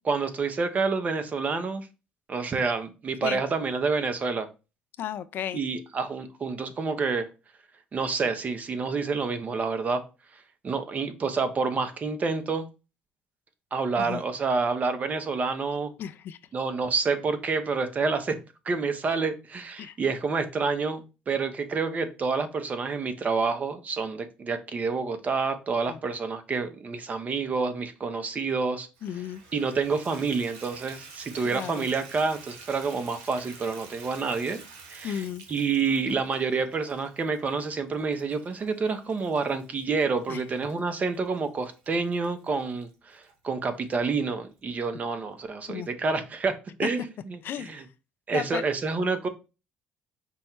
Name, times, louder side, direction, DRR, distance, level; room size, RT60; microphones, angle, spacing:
voice 1, 0.0-1.9 2.3-4.5 5.5-7.3 7.9-10.0 10.3-12.6 13.7-15.9 16.5-18.4 18.6-28.9 29.5-34.6 34.9-46.5 46.8-47.8 48.3-49.3, right 4 dB, 40° right, 0.7 m, -28 dB
voice 2, 5.0-5.6 14.0-14.2 16.0-16.4 19.8-20.0 25.9-26.0 29.0-29.4 31.4-31.9 35.0-35.4 40.3-40.4 45.7-45.9 46.8-46.9 47.4-47.9 48.3-48.6, left 9 dB, 60° left, 0.4 m, -34 dB
Water tap faucet / Bathtub (filling or washing), 29.0-43.3 43.9-44.0 44.5-44.6 44.9-45.0, right 4 dB, 80° right, 1.0 m, -49 dB
5.3 x 2.2 x 4.4 m
supercardioid pair, 70°, 4 cm